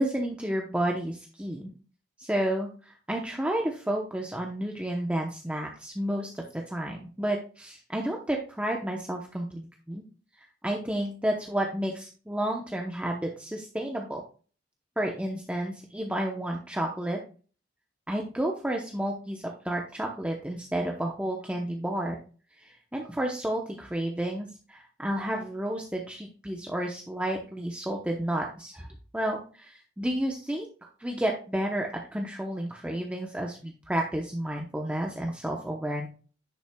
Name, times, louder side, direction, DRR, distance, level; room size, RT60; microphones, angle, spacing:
voice 1, 0.0-1.7 2.2-10.0 10.4-14.2 15.0-17.2 18.1-22.2 22.6-28.9 29.1-30.7 31.0-36.1, right 1 dB, 5° right, 0 dB, 0.8 m, -31 dB
10.0 x 5.8 x 2.3 m, 0.38 s
head